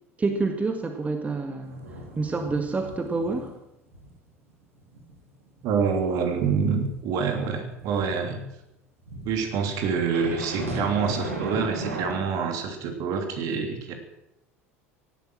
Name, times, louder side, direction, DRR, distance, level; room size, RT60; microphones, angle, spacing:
voice 1, 0.2-1.8 2.1-3.6, right 3 dB, 20° right, 5 dB, 1.8 m, -28 dB
sound 1, 1.6-3.5 3.9-4.1 4.5-8.1 9.1-12.1, right 2 dB, 80° right, 3.5 m, -37 dB
voice 2, 5.6-8.4 9.2-13.9, right 5 dB, 50° right, 5 dB, 3.0 m, -26 dB
17.5 x 12.0 x 6.3 m, 0.85 s
figure-of-eight pair, 75°, 8 cm